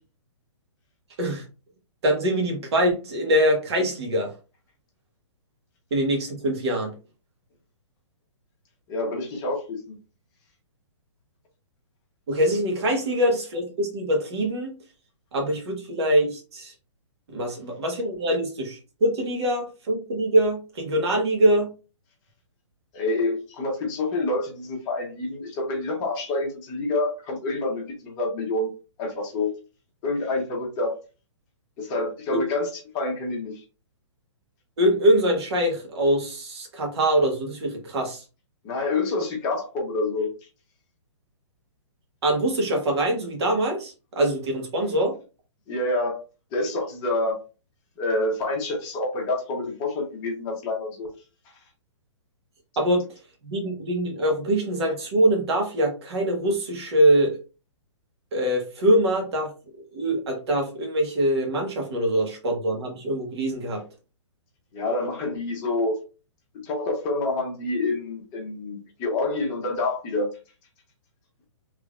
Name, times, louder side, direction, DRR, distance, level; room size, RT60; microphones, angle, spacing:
voice 1, 2.0-4.3 5.9-6.9 12.3-14.7 15.3-16.7 17.3-21.7 32.3-32.4 34.8-38.2 42.2-45.1 52.8-53.0 53.4-57.4 58.3-59.5 59.9-63.8, right 1 dB, 60° right, 1.5 m, -23 dB
voice 2, 8.9-10.0 22.9-28.7 29.0-29.5 30.0-31.0 31.8-33.6 38.6-40.3 45.7-46.2 46.5-47.4 48.0-51.1 64.7-66.0 66.5-70.3, left 2 dB, 25° left, 1.2 m, -27 dB
3.7 x 3.3 x 2.5 m
hypercardioid pair, 155°, 16 cm